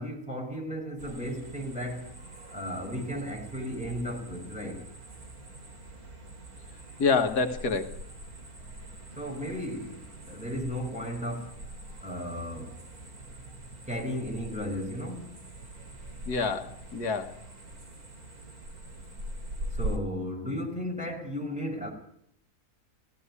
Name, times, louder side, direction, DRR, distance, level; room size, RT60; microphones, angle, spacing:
voice 1, 0.0-2.2 2.5-4.9 8.7-8.9 9.2-11.5 12.0-12.8 13.9-15.3 15.8-16.1 19.7-21.9, equal, 5° right, 5.7 m, -35 dB
sound 1, 1.0-20.0, right 1 dB, 70° right, 3.3 m, -43 dB
voice 2, 7.0-8.0 16.3-17.4, left 4 dB, 85° left, 2.0 m, -27 dB
18.5 x 15.5 x 9.8 m
omnidirectional pair, 1.6 m